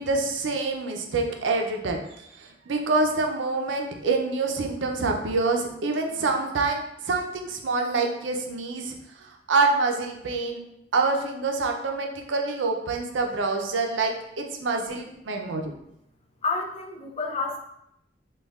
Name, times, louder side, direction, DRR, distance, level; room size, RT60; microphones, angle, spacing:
voice 1, 0.0-2.0 2.4-8.9 9.5-10.6 10.9-15.7, right 3 dB, 90° right, 3 dB, 0.5 m, -26 dB
voice 2, 16.4-17.6, left 3 dB, 30° left, 2 dB, 0.5 m, -29 dB
5.2 x 2.3 x 2.4 m, 0.80 s
head